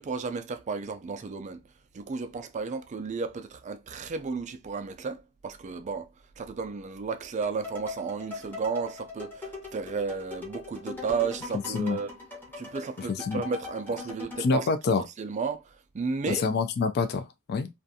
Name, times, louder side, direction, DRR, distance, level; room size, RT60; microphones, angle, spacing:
voice 1, 0.0-1.6 1.9-6.1 6.4-12.1 12.6-14.7 15.2-16.4, right 5 dB, 35° right, 0.3 m, -33 dB
sound 1, 7.4-14.5, left 4 dB, 10° left, 0.8 m, -41 dB
voice 2, 13.0-13.4 14.4-15.0 16.3-17.7, left 4 dB, 45° left, 0.3 m, -27 dB
2.5 x 2.3 x 2.6 m
head